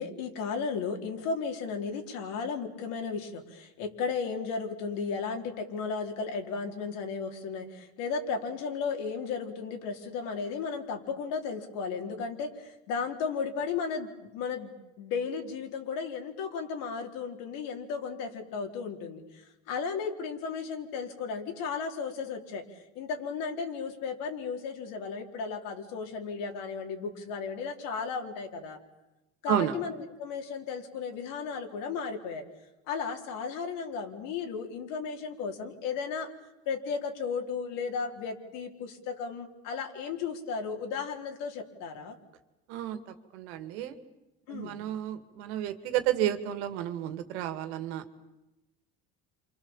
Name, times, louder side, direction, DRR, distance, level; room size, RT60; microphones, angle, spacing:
voice 1, 0.0-14.7 15.0-19.2 19.7-22.6 23.0-28.8 29.4-29.9 30.2-32.4 32.9-36.3 36.7-42.1 44.5-44.8, left 5 dB, 75° left, 3 dB, 4.2 m, -34 dB
voice 2, 29.5-29.8 42.7-44.0 44.5-48.2, right 11 dB, 85° right, 9 dB, 2.4 m, -31 dB
28.5 x 25.5 x 7.3 m, 0.98 s
supercardioid pair, 95°, 33 cm